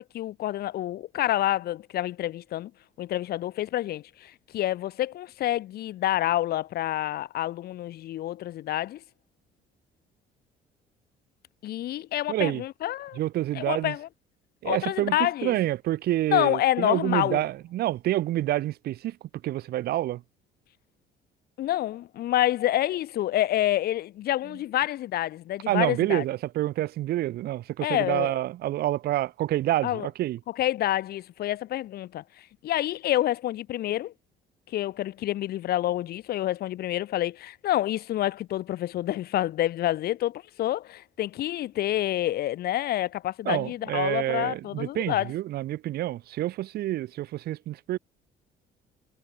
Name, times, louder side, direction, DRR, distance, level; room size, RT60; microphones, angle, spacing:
voice 1, 0.0-2.7 3.0-9.0 11.6-13.2 13.5-14.1 14.6-15.6 16.3-17.4 21.6-26.2 27.8-28.4 29.8-30.1 30.5-34.1 34.7-45.3, left 13 dB, 70° left, 2.3 m, -28 dB
voice 2, 12.3-12.6 13.2-13.9 14.6-19.2 19.4-20.2 25.7-30.4 43.4-48.0, right 14 dB, 70° right, 1.3 m, -28 dB
cardioid pair, 110°, 17 cm